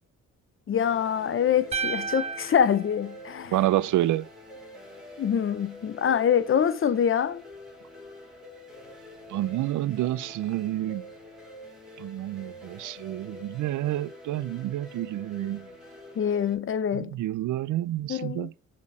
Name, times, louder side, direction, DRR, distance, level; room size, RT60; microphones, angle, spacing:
voice 1, 0.7-3.6 5.2-7.4 16.2-17.2 18.1-18.5, left 8 dB, 45° left, 0.6 m, -25 dB
sound 1, 0.8-16.5, left 1 dB, ahead, 3.1 m, -46 dB
sound 2, 1.7-4.0, right 5 dB, 20° right, 0.4 m, -34 dB
voice 2, 3.5-4.3 9.3-11.0 12.0-15.7 16.9-18.5, right 14 dB, 85° right, 0.5 m, -28 dB
7.2 x 4.3 x 4.8 m
cardioid pair, 105°, 30 cm